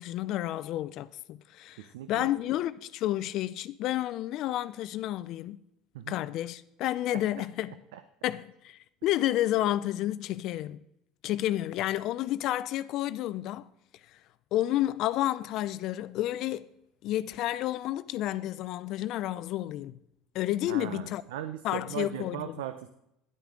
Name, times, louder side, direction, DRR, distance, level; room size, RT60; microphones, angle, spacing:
voice 1, 0.0-5.6 6.1-7.7 8.2-10.8 11.2-13.7 14.1-14.2 14.5-16.7 17.0-20.0 20.3-21.2 21.6-22.6, left 14 dB, 60° left, 0.4 m, -30 dB
voice 2, 1.8-2.3 5.9-6.2 7.1-7.5 7.9-8.0 20.7-22.9, right 10 dB, 85° right, 0.5 m, -38 dB
10.5 x 9.0 x 3.8 m
supercardioid pair, 100°, 0 cm